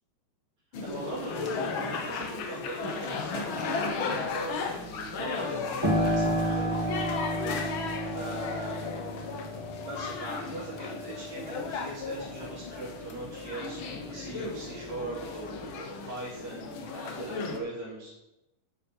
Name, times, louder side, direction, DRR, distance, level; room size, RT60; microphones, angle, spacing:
sound 1, 0.7-17.6, left 4 dB, 55° left, 1.6 m, -36 dB
voice 1, 0.8-7.0 8.1-8.8 9.8-18.2, right 2 dB, 65° right, -9 dB, 4.8 m, -40 dB
Piano, 5.8-14.3 14.7-15.7, equal, 10° right, 2.3 m, -33 dB
11.5 x 7.4 x 5.4 m, 0.92 s
omnidirectional pair, 3.3 m